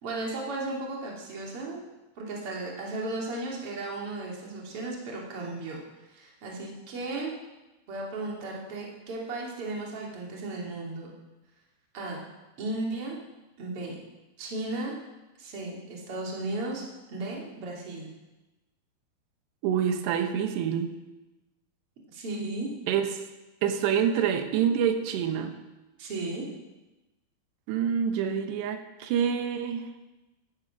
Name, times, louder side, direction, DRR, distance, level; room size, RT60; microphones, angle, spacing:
voice 1, 0.0-1.8 2.2-5.8 6.1-7.3 7.9-11.1 11.9-12.2 12.6-13.2 13.6-14.0 14.4-14.9 15.4-18.1 22.1-22.7 26.0-26.5, right 2 dB, 35° right, -2 dB, 3.3 m, -35 dB
voice 2, 19.6-20.9 22.9-23.2 23.6-25.5 27.7-29.9, right 8 dB, 75° right, 7 dB, 3.2 m, -27 dB
14.5 x 12.0 x 6.1 m, 1.1 s
omnidirectional pair, 5.3 m